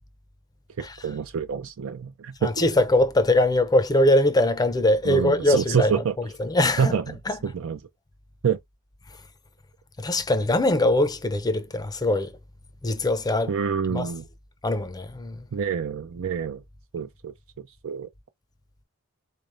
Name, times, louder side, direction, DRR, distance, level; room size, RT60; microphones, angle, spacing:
voice 1, 1.0-2.7 5.0-6.1 6.8-7.2 7.4-7.8 8.4-8.6 13.5-14.2 15.5-16.6 16.9-17.3 17.8-18.1, right 6 dB, 70° right, 0.4 m, -26 dB
voice 2, 2.4-6.0 6.4-7.0 7.3-7.4 10.0-12.3 12.8-13.5 13.9-14.1 14.6-15.5, left 1 dB, 20° left, 0.5 m, -22 dB
4.0 x 3.3 x 2.5 m
head